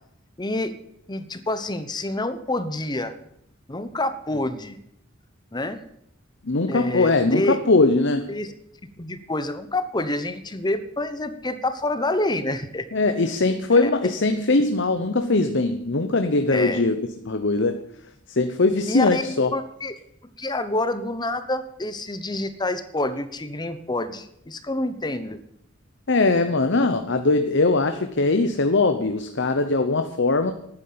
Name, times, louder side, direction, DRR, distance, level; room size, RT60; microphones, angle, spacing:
voice 1, 0.4-0.7 1.1-3.1 3.7-4.8 5.5-5.8 6.7-7.6 8.3-8.5 9.0-12.9 13.7-13.9 16.5-16.8 18.9-19.9 20.4-25.4, left 2 dB, 20° left, 11 dB, 0.9 m, -27 dB
voice 2, 6.4-8.3 12.9-17.0 17.2-17.8 18.3-19.5 26.1-30.5, left 3 dB, 60° left, 8 dB, 0.9 m, -21 dB
11.5 x 9.8 x 8.7 m, 0.75 s
head